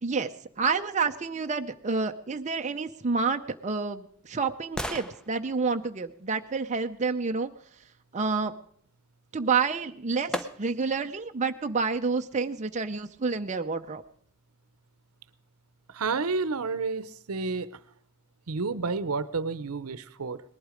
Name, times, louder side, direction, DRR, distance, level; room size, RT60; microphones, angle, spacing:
voice 1, 0.0-7.5 8.1-8.5 9.3-14.0, right 4 dB, 35° right, 6 dB, 0.6 m, -29 dB
sound 1, 3.4-7.3 9.4-9.5 10.3-11.0 11.5-11.6, equal, 5° left, 0.7 m, -40 dB
voice 2, 15.9-17.8 18.5-20.4, right 4 dB, 80° right, 16 dB, 0.8 m, -30 dB
19.0 x 11.5 x 5.0 m, 0.64 s
head